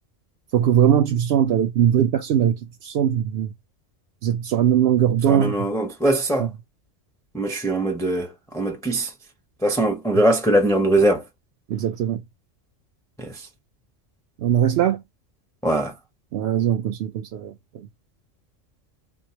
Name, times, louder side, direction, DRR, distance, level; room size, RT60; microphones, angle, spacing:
voice 1, 0.5-3.5 4.2-5.5 6.4-6.5 11.7-12.2 14.4-15.0 16.3-17.9, right 10 dB, 65° right, 0.7 m, -20 dB
voice 2, 5.3-6.5 7.3-9.1 9.6-11.2 13.2-13.5 15.6-15.9, right 1 dB, 5° left, 0.6 m, -21 dB
4.0 x 2.2 x 2.8 m
omnidirectional pair, 1.3 m